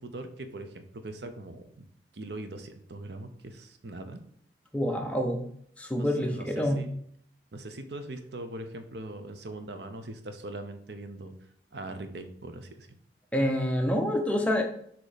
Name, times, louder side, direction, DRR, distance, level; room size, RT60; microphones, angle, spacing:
voice 1, 0.0-1.8 2.1-4.2 6.0-7.0 7.5-11.3 11.7-12.9, right 2 dB, 65° right, 8 dB, 0.7 m, -41 dB
voice 2, 4.7-5.4 5.8-6.8 13.3-14.6, equal, 5° left, 2 dB, 0.7 m, -27 dB
6.4 x 3.0 x 4.9 m, 0.65 s
head